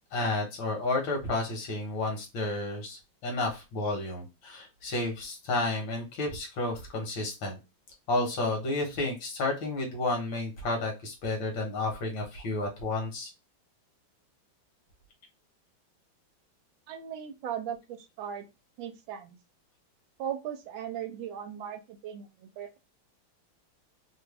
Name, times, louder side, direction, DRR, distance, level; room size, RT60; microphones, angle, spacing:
voice 1, 0.1-7.6 8.1-13.3, left 2 dB, 75° left, 1 dB, 1.9 m, -31 dB
voice 2, 16.9-18.5 18.8-19.4 20.2-22.8, right 9 dB, 80° right, 9 dB, 1.3 m, -38 dB
3.7 x 2.2 x 3.2 m, 0.27 s
omnidirectional pair, 2.1 m